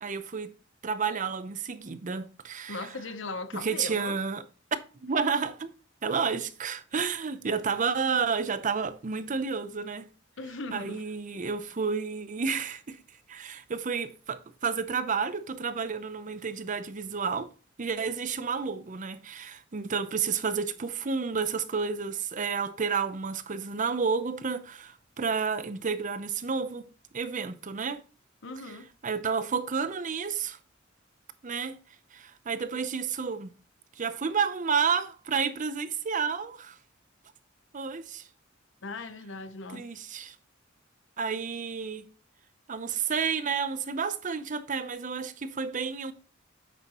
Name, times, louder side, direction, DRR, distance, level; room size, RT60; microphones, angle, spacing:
voice 1, 0.0-0.5 0.8-2.9 3.6-4.4 5.0-5.7 6.0-10.1 10.7-13.0 13.3-17.5 17.8-26.9 27.1-28.0 29.0-30.6 31.4-31.8 32.1-33.5 34.0-36.8 37.7-38.3 39.7-40.4 41.2-42.1 42.7-46.1, right 5 dB, 40° right, 0.6 m, -31 dB
voice 2, 2.7-4.2 10.4-11.0 28.4-28.9 38.8-39.8, left 3 dB, 65° left, 0.8 m, -38 dB
9.0 x 6.3 x 3.0 m
head